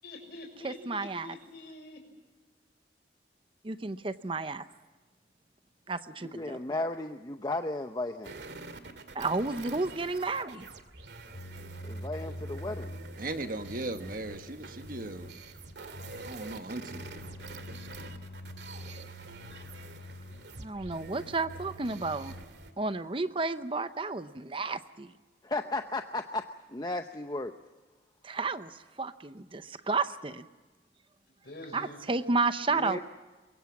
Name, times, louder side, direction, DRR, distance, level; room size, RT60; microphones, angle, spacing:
voice 1, 0.0-2.0 31.4-32.0, left 2 dB, 65° left, 4 dB, 6.4 m, -46 dB
voice 2, 0.6-1.3 3.6-4.7 5.9-6.6 9.1-10.7 20.6-22.3 22.8-25.1 28.2-30.5 31.7-33.0, right 3 dB, 30° right, 12 dB, 0.7 m, -32 dB
voice 3, 6.2-8.3 11.3-12.9 25.4-26.4 26.7-27.5 32.7-33.0, left 2 dB, 25° left, 6 dB, 0.8 m, -35 dB
sound 1, 8.2-22.7, right 3 dB, 75° right, 2.1 m, -47 dB
sound 2, 11.3-22.5, left 1 dB, 85° left, 1.4 m, -45 dB
voice 4, 13.2-15.4 16.2-17.1, right 2 dB, 50° right, 7 dB, 1.5 m, -37 dB
23.5 x 22.5 x 7.2 m, 1.3 s
head